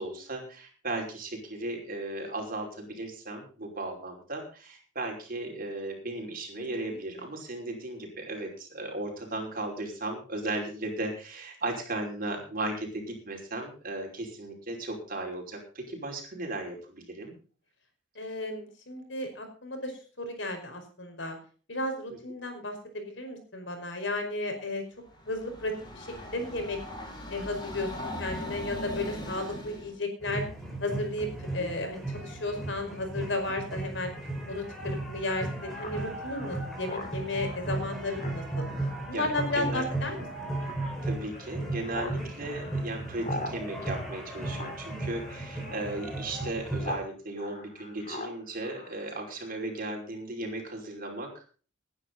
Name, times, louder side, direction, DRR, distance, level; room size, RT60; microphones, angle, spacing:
voice 1, 0.0-17.3 22.1-22.2 31.6-31.7 39.1-39.8 41.0-51.4, right 2 dB, 50° right, 2 dB, 5.4 m, -36 dB
voice 2, 6.6-7.3 18.2-21.4 21.7-24.8 25.3-26.1 26.3-26.8 27.3-30.4 30.8-34.1 34.5-38.7 39.1-40.5, left 2 dB, 70° left, 5 dB, 5.2 m, -34 dB
Train, 25.1-30.0, equal, 25° left, 4.7 m, -39 dB
sound 1, 30.2-47.0, right 2 dB, ahead, 5.5 m, -36 dB
Speech synthesizer, 35.8-47.1 47.4-49.6, left 2 dB, 40° left, 4.2 m, -43 dB
19.5 x 10.5 x 4.0 m, 0.38 s
head